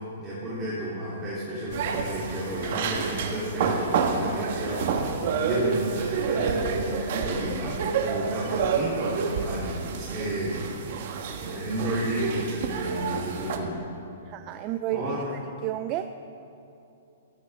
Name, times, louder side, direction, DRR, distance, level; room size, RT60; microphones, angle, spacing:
voice 1, 0.2-10.6 11.4-13.8 14.9-15.3, right 1 dB, 15° right, -9 dB, 3.1 m, -32 dB
sound 1, 1.7-13.6, right 5 dB, 55° right, 1.4 m, -29 dB
voice 2, 14.3-15.2 15.6-16.1, right 13 dB, 35° right, 9 dB, 0.4 m, -31 dB
15.5 x 13.5 x 3.5 m, 2.8 s
hypercardioid pair, 140°, 0 cm